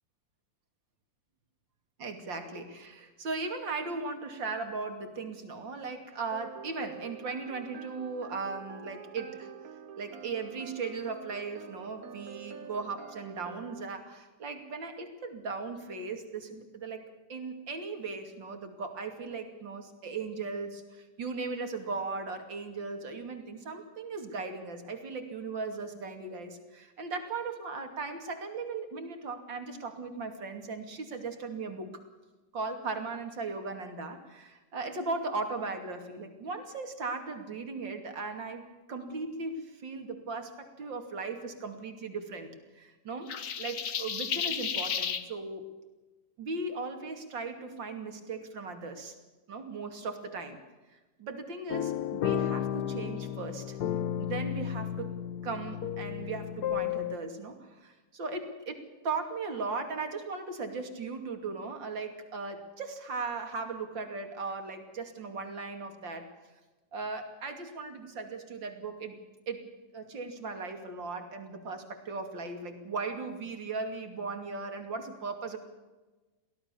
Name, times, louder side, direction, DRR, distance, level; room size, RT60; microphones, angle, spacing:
voice 1, 2.0-9.5 10.0-17.0 17.3-31.9 32.5-40.5 40.8-45.6 46.4-49.1 49.5-50.6 50.9-53.8 54.2-66.3 66.9-69.2 69.5-75.6, right 4 dB, 80° right, 6 dB, 3.4 m, -37 dB
sound 1, 6.3-13.9, right 7 dB, 55° right, 1.3 m, -47 dB
sound 2, 43.3-45.2, left 7 dB, 50° left, 1.4 m, -32 dB
sound 3, 51.7-57.2, left 10 dB, 65° left, 1.3 m, -33 dB
23.5 x 17.0 x 7.0 m, 1.2 s
omnidirectional pair, 2.0 m